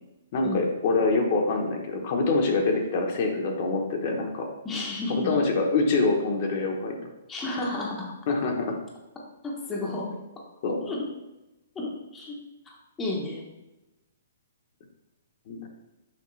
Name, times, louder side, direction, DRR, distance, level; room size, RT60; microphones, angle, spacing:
voice 1, 0.3-4.5 5.1-7.0 8.3-8.8 10.6-10.8 15.5-15.7, left 3 dB, 40° left, 2 dB, 0.9 m, -25 dB
voice 2, 4.6-5.3 7.3-8.1 9.4-10.1 10.9-11.0 11.8-12.4 12.7-13.5, left 2 dB, 10° left, -3 dB, 0.8 m, -32 dB
5.9 x 5.0 x 3.2 m, 0.99 s
hypercardioid pair, 165°, 0 cm